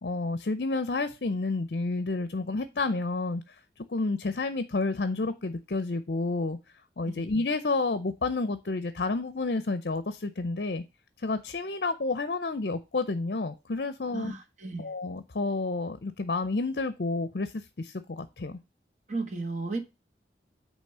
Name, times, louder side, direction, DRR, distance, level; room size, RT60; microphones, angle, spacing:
voice 1, 0.0-3.4 3.9-6.6 7.0-10.8 11.2-14.3 14.8-18.6, left 3 dB, 60° left, 0.6 m, -30 dB
voice 2, 14.1-14.9 19.1-19.8, right 3 dB, 40° right, 1.3 m, -34 dB
8.9 x 3.2 x 6.6 m
head